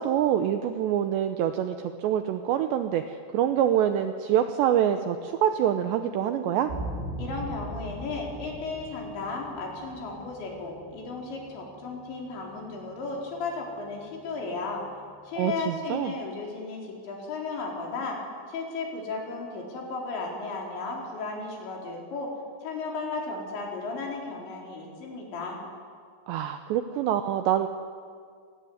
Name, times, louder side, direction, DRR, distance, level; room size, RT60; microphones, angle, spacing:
voice 1, 0.0-6.7 15.4-16.1 26.3-27.7, right 10 dB, 80° right, 8 dB, 2.6 m, -25 dB
sound 1, 6.7-15.7, right 1 dB, 60° right, 9.4 m, -42 dB
voice 2, 7.2-14.8 15.2-18.2 18.5-22.3 22.6-25.6, left 3 dB, 60° left, -1 dB, 6.3 m, -34 dB
26.0 x 19.0 x 9.6 m, 2.1 s
omnidirectional pair, 6.0 m